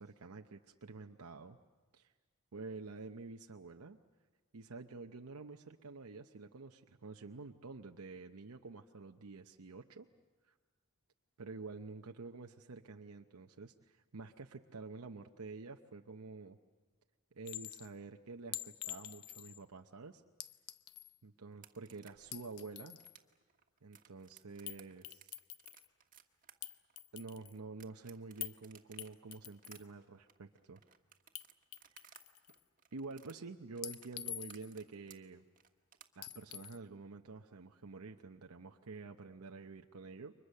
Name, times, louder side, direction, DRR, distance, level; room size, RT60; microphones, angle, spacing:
voice 1, 0.0-1.6 1.9-2.1 2.5-4.0 4.5-10.1 10.4-10.5 11.4-16.6 17.4-20.2 21.2-23.0 23.8-25.3 27.1-30.8 32.9-35.4 36.2-40.3, right 3 dB, 70° right, 4 dB, 0.8 m, -49 dB
Chink clink, 17.5-17.9 18.5-19.6 20.4-21.1 22.2-23.1 24.7-24.8 25.0-25.9 26.6-27.6 28.4-28.6 29.0-29.8 31.3-31.4 31.7-32.6 33.8-34.8 36.2-36.8, left 13 dB, 75° left, 0.8 m, -46 dB
sound 1, 21.5-32.2 32.5-36.3, right 8 dB, 35° right, 1.5 m, -60 dB
29.5 x 24.0 x 6.6 m, 1.4 s
head